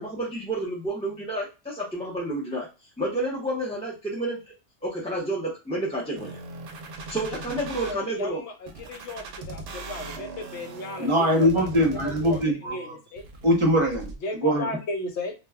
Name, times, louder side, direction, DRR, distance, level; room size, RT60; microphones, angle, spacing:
voice 1, 0.0-2.7 3.0-4.4 4.8-6.4 7.1-8.4, right 1 dB, 5° left, 0.6 m, -30 dB
sound 1, 6.2-7.9 8.7-12.7 13.2-14.2, right 2 dB, 65° right, 0.8 m, -39 dB
voice 2, 7.9-11.7 12.0-13.2 14.2-15.3, left 2 dB, 75° left, 0.9 m, -35 dB
voice 3, 11.0-12.7 13.4-14.1 14.4-14.7, equal, 30° right, 0.7 m, -22 dB
2.3 x 2.2 x 3.4 m
omnidirectional pair, 1.2 m